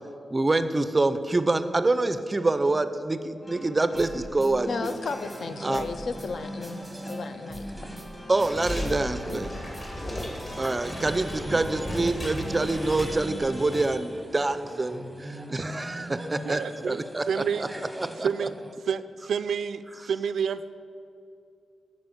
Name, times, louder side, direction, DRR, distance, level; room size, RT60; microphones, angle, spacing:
voice 1, 0.3-5.0 5.6-5.9 8.3-9.5 10.6-16.6 16.9-17.7 18.0-18.5, right 2 dB, 20° right, 11 dB, 0.4 m, -26 dB
sound 1, 3.4-13.9, equal, 15° left, 1.4 m, -41 dB
voice 2, 4.6-8.0 9.3-9.7, left 4 dB, 60° left, 10 dB, 0.5 m, -35 dB
sound 2, 5.0-18.7, right 1 dB, ahead, 0.9 m, -41 dB
sound 3, 8.3-13.9 14.2-14.4, left 1 dB, 30° left, 2.1 m, -36 dB
voice 3, 16.4-17.7 18.2-18.5 18.9-20.8, right 7 dB, 85° right, 13 dB, 0.3 m, -29 dB
9.6 x 5.5 x 7.7 m, 2.6 s
wide cardioid pair, 135°, 0 cm